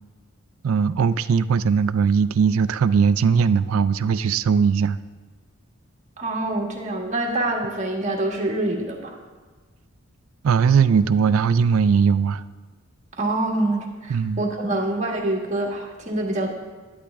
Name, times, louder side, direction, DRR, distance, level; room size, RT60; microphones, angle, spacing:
voice 1, 0.6-5.0 10.4-12.4 14.1-14.4, right 6 dB, 80° right, 15 dB, 0.4 m, -19 dB
voice 2, 6.2-9.2 13.2-16.5, right 2 dB, 35° right, 0 dB, 1.6 m, -25 dB
11.5 x 11.0 x 3.5 m, 1.3 s
head